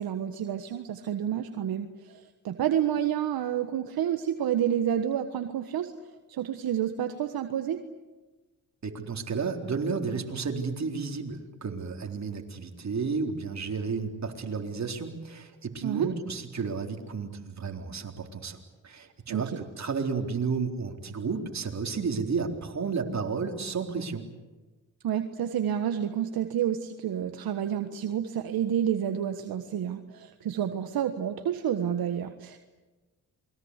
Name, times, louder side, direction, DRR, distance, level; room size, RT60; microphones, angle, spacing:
voice 1, 0.0-5.9 6.3-7.8 15.8-16.1 19.3-19.6 25.0-32.6, right 9 dB, 70° right, 7 dB, 1.5 m, -29 dB
voice 2, 8.8-24.3, right 5 dB, 45° right, 3 dB, 4.0 m, -32 dB
28.0 x 22.0 x 8.3 m, 1.2 s
supercardioid pair, 60°, 37 cm